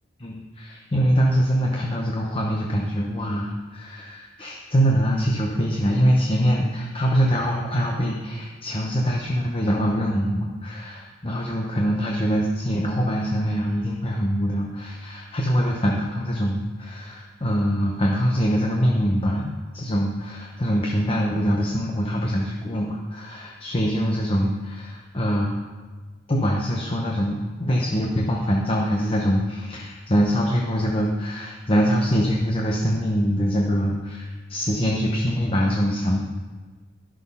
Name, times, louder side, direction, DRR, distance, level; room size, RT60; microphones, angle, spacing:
voice 1, 0.2-25.6 26.3-36.2, equal, 30° left, -1 dB, 0.9 m, -23 dB
12.0 x 6.2 x 5.5 m, 1.4 s
head